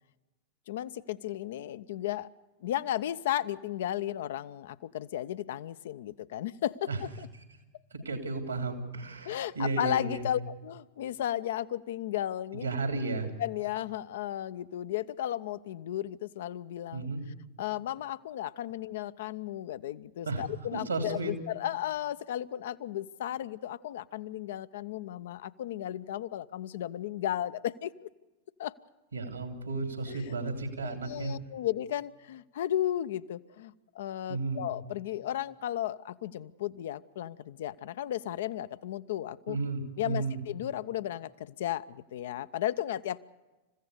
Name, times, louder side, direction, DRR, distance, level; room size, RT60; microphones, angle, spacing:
voice 1, 0.7-2.3 2.6-7.3 9.2-12.7 13.4-17.1 17.6-28.1 28.6-28.7 30.1-30.3 30.8-39.6 40.0-43.2, left 12 dB, 55° left, 14 dB, 0.6 m, -34 dB
voice 2, 7.9-10.2 12.5-13.3 16.9-17.2 20.2-20.4 20.7-21.3 29.1-31.4 34.3-34.6 39.5-40.4, right 3 dB, 80° right, 6 dB, 3.0 m, -33 dB
28.0 x 15.5 x 6.7 m, 1.2 s
figure-of-eight pair, 90°, 0 cm